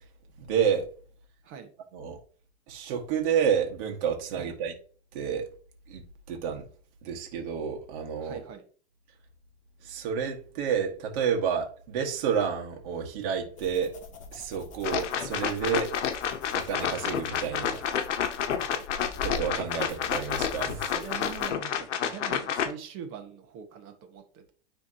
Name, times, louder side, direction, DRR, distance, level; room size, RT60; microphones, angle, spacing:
voice 1, 0.4-0.9 1.9-2.2 2.7-4.7 5.1-5.4 5.9-6.0 6.3-6.6 7.0-8.4 9.8-13.9 14.3-15.9 16.5-17.8 19.2-20.8, right 7 dB, 50° right, 1.7 m, -29 dB
voice 2, 8.2-8.6 19.8-19.9 20.6-24.5, right 7 dB, 35° right, 1.4 m, -43 dB
sound 1, 13.6-21.5, left 4 dB, 20° left, 0.9 m, -44 dB
sound 2, 14.8-22.7, left 8 dB, 80° left, 0.9 m, -30 dB
9.6 x 3.5 x 2.9 m
hypercardioid pair, 145°, 35 cm